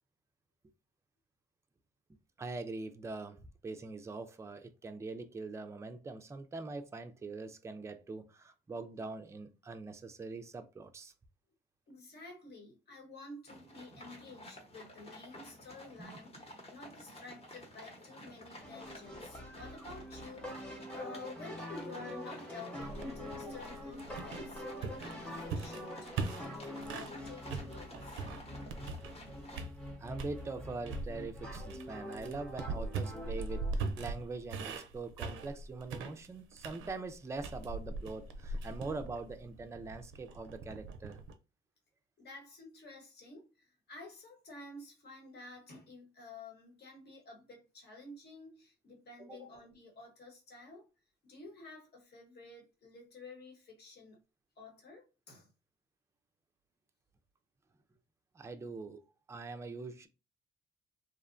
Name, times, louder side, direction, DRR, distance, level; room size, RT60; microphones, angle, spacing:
voice 1, 2.4-11.1 16.0-16.2 23.5-23.6 30.0-41.2 49.2-49.4 58.3-59.0 59.3-60.1, right 3 dB, 15° right, 0.3 m, -43 dB
voice 2, 11.9-16.3 16.7-28.2 42.2-50.8 51.2-54.2 54.6-55.5, left 3 dB, 55° left, 1.1 m, -51 dB
sound 1, 13.5-29.7, left 1 dB, 30° left, 0.9 m, -52 dB
sound 2, 18.6-33.7, left 1 dB, 5° left, 0.9 m, -45 dB
sound 3, 22.8-27.2 27.5-29.3 29.5-30.4 30.9-41.3, right 3 dB, 80° right, 0.5 m, -41 dB
2.7 x 2.1 x 2.5 m
cardioid pair, 90°, 20 cm